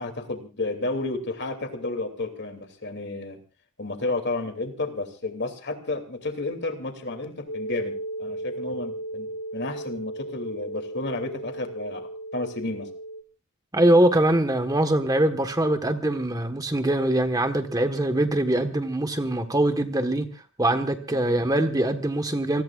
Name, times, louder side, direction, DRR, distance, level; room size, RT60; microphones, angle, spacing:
voice 1, 0.0-3.4 3.8-7.9 8.2-12.9 21.2-21.4, left 2 dB, 50° left, 2.8 m, -31 dB
sound 1, 7.5-13.2, right 1 dB, 70° left, 2.3 m, -35 dB
voice 2, 13.7-20.3 20.6-22.6, right 1 dB, 15° right, 1.4 m, -23 dB
28.0 x 19.5 x 2.5 m
head